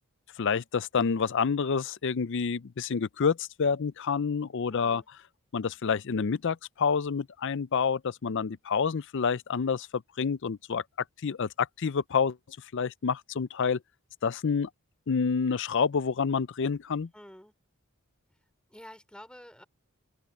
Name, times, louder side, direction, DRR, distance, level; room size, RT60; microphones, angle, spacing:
voice 1, 0.4-5.0 5.5-10.8 11.2-13.8 14.2-14.7 15.1-17.1, left 5 dB, 55° left, 0.5 m, -28 dB
voice 2, 4.7-5.1 17.1-17.5 18.7-19.6, left 1 dB, 5° left, 4.8 m, -49 dB
open air
head